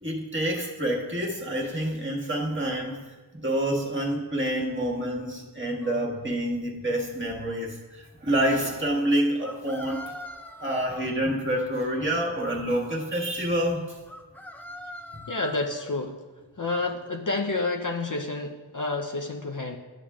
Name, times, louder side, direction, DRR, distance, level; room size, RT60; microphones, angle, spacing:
voice 1, 0.0-3.0 3.3-10.1 10.6-14.0 15.1-15.2, right 1 dB, 25° right, -2 dB, 1.7 m, -27 dB
sound 1, 5.8-6.0 9.4-11.1 14.1-15.9, left 1 dB, 5° left, 0.6 m, -42 dB
voice 2, 15.3-16.2 16.6-19.8, left 2 dB, 40° left, 2 dB, 0.7 m, -29 dB
12.0 x 7.1 x 2.4 m, 1.3 s
wide cardioid pair, 65°, 50 cm